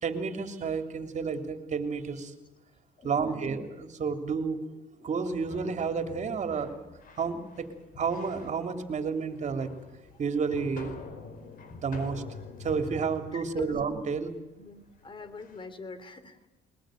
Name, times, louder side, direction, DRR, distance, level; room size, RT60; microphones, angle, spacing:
voice 1, 0.0-2.3 3.0-4.7 5.0-6.7 7.2-9.7 10.2-11.0 11.8-12.2 12.6-14.3, right 5 dB, 45° right, 7 dB, 3.2 m, -31 dB
voice 2, 3.0-3.4 13.3-13.8 14.6-16.4, left 4 dB, 30° left, 12 dB, 2.9 m, -42 dB
sound 1, 5.4-15.6, left 4 dB, 55° left, 4.6 m, -47 dB
22.0 x 21.0 x 9.2 m, 0.99 s
cardioid pair, 110°, 17 cm